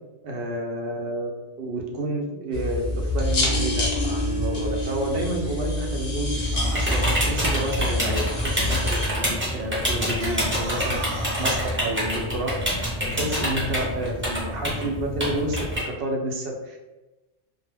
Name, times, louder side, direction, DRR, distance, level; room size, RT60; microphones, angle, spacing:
voice 1, 0.2-11.1 11.4-16.8, right 1 dB, 65° right, 1 dB, 0.7 m, -30 dB
sound 1, 2.5-9.1, left 1 dB, 50° left, 0.7 m, -26 dB
sound 2, 6.3-15.8, equal, 15° right, 0.6 m, -27 dB
sound 3, 6.5-6.9 10.1-11.7, right 2 dB, 80° right, 1.1 m, -34 dB
2.1 x 2.0 x 3.2 m, 1.1 s
omnidirectional pair, 1.2 m